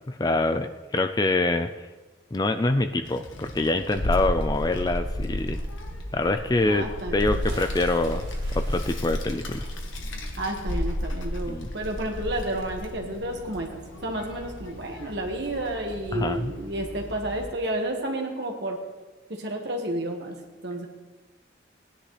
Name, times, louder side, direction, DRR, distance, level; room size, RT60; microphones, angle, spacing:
voice 1, 0.1-1.7 2.3-5.6 6.1-6.9 7.1-8.3 8.5-9.6 11.5-11.7 16.1-16.5, left 2 dB, 20° left, 8 dB, 0.3 m, -25 dB
Child speech kid speaking, 3.0-17.5, left 1 dB, 80° left, 1.4 m, -33 dB
voice 2, 6.7-7.6 10.4-18.8 19.3-20.4 20.6-20.9, right 1 dB, 55° right, 2 dB, 1.8 m, -31 dB
Bathtub (filling or washing) / Splash splatter, 7.1-12.1 12.3-12.4, right 2 dB, 25° right, 2.7 m, -49 dB
18.0 x 10.0 x 3.3 m, 1.2 s
head